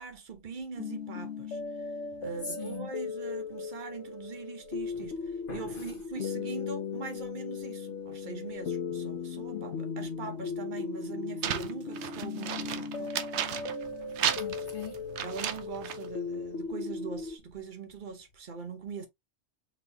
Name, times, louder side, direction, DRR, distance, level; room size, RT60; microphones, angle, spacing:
voice 1, 0.0-1.9 2.2-13.1 15.2-19.1, right 5 dB, 45° right, 1.0 m, -42 dB
sound 1, 0.8-17.4, left 5 dB, 75° left, 1.1 m, -37 dB
voice 2, 2.4-2.9 4.9-5.1 5.5-5.9 9.5-9.7 14.4-15.2, left 7 dB, 50° left, 0.9 m, -41 dB
sound 2, 11.4-13.9 14.2-16.1, right 9 dB, 75° right, 0.9 m, -33 dB
4.2 x 3.5 x 2.7 m
omnidirectional pair, 1.2 m